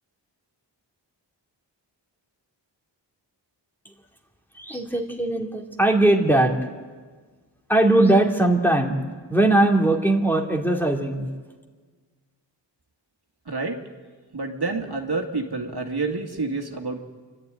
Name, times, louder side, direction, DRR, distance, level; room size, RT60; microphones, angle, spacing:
voice 1, 4.5-6.5 7.7-9.0 9.3-11.3, right 1 dB, 5° left, 0 dB, 2.6 m, -20 dB
voice 2, 13.5-13.8 14.3-17.0, right 3 dB, 60° right, 2 dB, 2.3 m, -28 dB
30.0 x 12.5 x 9.1 m, 1.5 s
wide cardioid pair, 85°, 44 cm